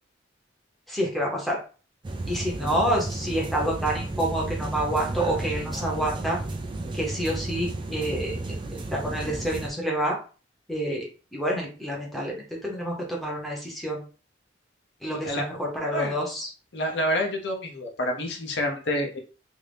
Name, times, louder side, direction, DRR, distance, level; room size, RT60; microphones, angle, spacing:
voice 1, 0.9-1.6 2.2-6.4 6.9-8.4 8.9-10.2 10.7-11.0 11.3-14.0 15.0-16.5, right 1 dB, ahead, -3 dB, 0.8 m, -28 dB
sound 1, 2.0-9.7, right 2 dB, 25° right, 0.3 m, -33 dB
voice 2, 16.7-19.2, equal, 65° left, 2 dB, 0.7 m, -28 dB
2.7 x 2.6 x 3.4 m, 0.37 s
head